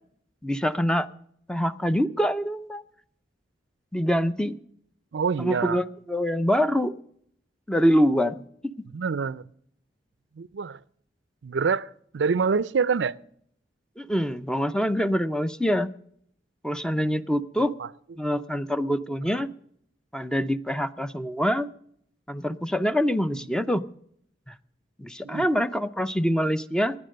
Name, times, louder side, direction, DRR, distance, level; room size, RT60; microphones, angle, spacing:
voice 1, 0.4-1.1 1.5-2.8 3.9-4.5 5.4-6.9 7.7-8.4 14.0-15.9 16.6-17.7 18.2-19.5 20.1-21.7 22.3-23.8 24.5-24.6 25.0-27.0, equal, 5° left, 0.5 m, -25 dB
voice 2, 5.1-5.8 8.9-9.4 10.4-10.8 11.4-13.1 17.8-17.9 19.3-19.4 23.3-23.4 25.2-25.5, right 5 dB, 90° right, 0.5 m, -26 dB
16.5 x 10.0 x 6.5 m
head